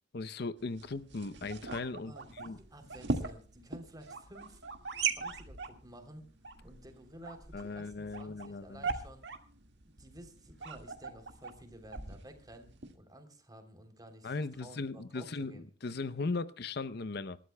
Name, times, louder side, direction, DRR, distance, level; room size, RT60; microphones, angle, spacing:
voice 1, 0.1-2.6 7.5-8.9 14.2-17.4, left 3 dB, 60° left, 14 dB, 0.6 m, -38 dB
sound 1, 0.6-13.0, right 4 dB, 75° right, 1.8 m, -40 dB
voice 2, 2.0-4.6 5.1-6.2 6.6-9.2 9.8-15.7, right 1 dB, 20° right, 5 dB, 3.2 m, -53 dB
27.0 x 12.5 x 2.2 m, 0.39 s
head